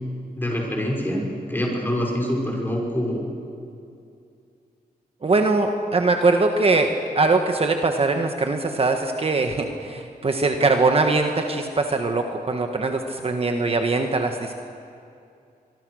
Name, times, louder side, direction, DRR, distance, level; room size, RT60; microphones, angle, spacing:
voice 1, 0.4-1.2 1.5-3.2, equal, 15° left, -1 dB, 6.0 m, -25 dB
voice 2, 5.2-6.9 7.1-14.5, right 3 dB, 40° right, 4 dB, 1.5 m, -21 dB
24.5 x 23.5 x 6.4 m, 2.5 s
wide cardioid pair, 115°, 16 cm